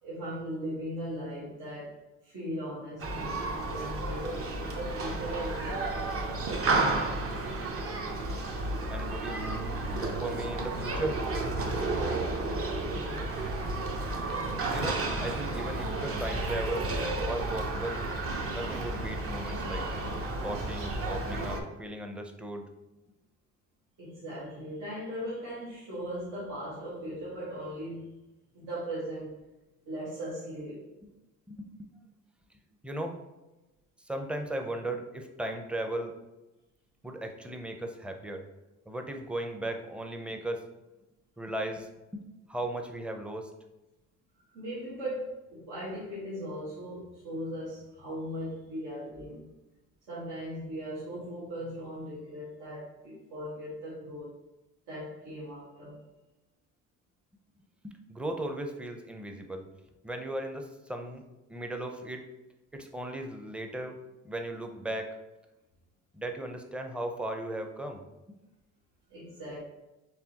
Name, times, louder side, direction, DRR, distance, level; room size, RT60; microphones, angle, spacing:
voice 1, 0.0-7.1 12.6-13.4 24.0-28.1 28.5-29.3 29.8-30.8 44.5-49.5 50.1-54.3 54.9-56.0 69.1-69.6, equal, 90° right, -9 dB, 1.5 m, -39 dB
Human group actions, 3.0-21.6, right 2 dB, 50° right, 0.8 m, -32 dB
voice 2, 8.9-9.6 9.9-11.2 14.7-16.9 17.3-18.0 18.5-20.1 20.4-22.6 31.0-31.1 31.5-31.9 32.8-33.2 34.0-36.1 37.0-38.4 38.9-40.6 41.4-42.2 42.5-43.5 57.8-59.6 60.0-61.2 61.5-62.3 62.7-64.0 64.2-65.2 66.1-68.4, right 1 dB, 5° right, 4 dB, 0.5 m, -37 dB
4.7 x 3.4 x 2.8 m, 1.0 s
cardioid pair, 90°, 30 cm